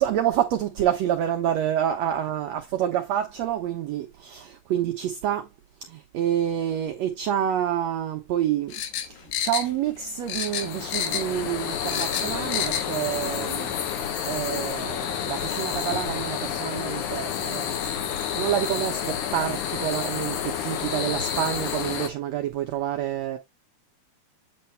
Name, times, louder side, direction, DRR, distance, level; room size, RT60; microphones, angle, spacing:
voice 1, 0.0-5.5 5.9-23.4, right 10 dB, 90° right, 1.5 m, -28 dB
sound 1, 8.7-10.0 10.3-11.4 11.7-12.9 13.2-13.3, left 9 dB, 85° left, 2.7 m, -29 dB
sound 2, 10.2-22.1, left 8 dB, 70° left, 2.3 m, -30 dB
8.6 x 3.2 x 4.4 m
omnidirectional pair, 4.1 m